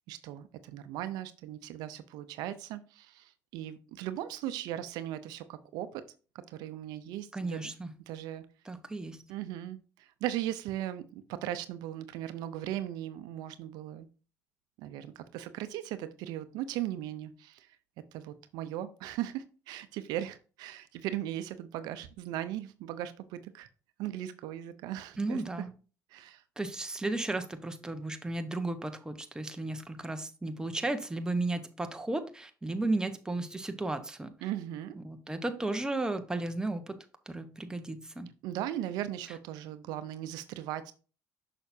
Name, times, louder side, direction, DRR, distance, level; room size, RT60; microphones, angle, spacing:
voice 1, 0.1-6.0 6.3-7.7 8.1-8.5 9.3-14.1 14.8-17.7 18.1-23.7 24.0-25.4 26.1-26.4 34.4-34.9 38.4-40.9, right 12 dB, 80° right, 0.6 m, -38 dB
voice 2, 7.3-7.9 8.7-9.2 25.2-25.7 26.6-34.3 35.0-36.9 37.3-38.3, right 2 dB, 10° right, 1.0 m, -34 dB
6.4 x 5.9 x 2.7 m
supercardioid pair, 90°, 7 cm